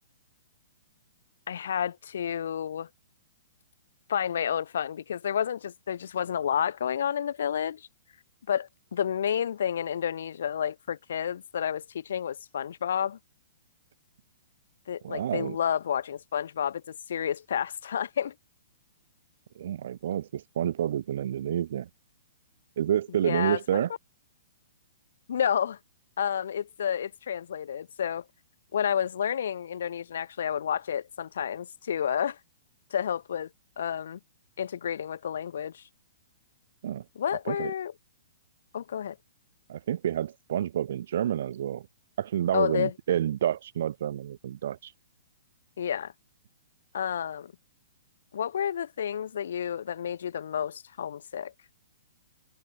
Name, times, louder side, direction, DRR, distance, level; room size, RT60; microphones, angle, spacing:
voice 1, 1.5-2.9 4.1-7.9 8.5-13.2 14.9-18.3 23.2-23.8 25.3-25.8 26.2-28.2 28.7-32.4 32.9-33.5 33.8-34.2 34.6-35.8 37.1-37.9 38.7-39.2 42.5-42.9 45.8-46.1 46.9-47.5 48.3-51.5, left 8 dB, 70° left, 6.7 m, -30 dB
voice 2, 15.0-15.6 19.6-21.9 22.8-23.9 36.8-37.0 37.5-37.7 39.7-41.9 42.2-44.9, right 10 dB, 55° right, 6.2 m, -29 dB
hypercardioid pair, 160°, 0 cm